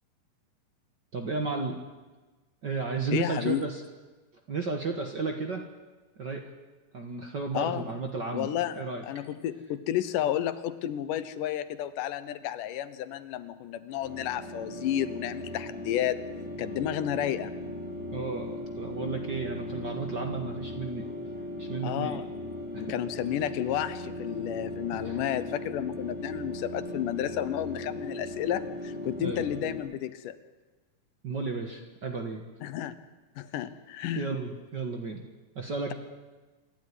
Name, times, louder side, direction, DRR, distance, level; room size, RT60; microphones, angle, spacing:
voice 1, 1.1-1.8 2.6-3.8 4.5-5.6 6.2-6.4 6.9-8.5 8.7-9.0 18.1-21.1 21.6-22.2 22.7-23.0 25.0-25.2 29.2-29.5 31.2-32.4 34.1-35.2 35.5-35.9, right 4 dB, 45° right, 3 dB, 1.6 m, -33 dB
voice 2, 3.1-3.6 7.5-7.9 8.3-16.2 16.6-17.5 21.8-22.3 22.7-30.4 32.6-33.0 33.4-34.3, left 11 dB, 80° left, 13 dB, 2.4 m, -31 dB
sound 1, 14.0-29.8, left 1 dB, 20° right, 7.6 m, -38 dB
27.0 x 12.0 x 9.8 m, 1.3 s
omnidirectional pair, 3.8 m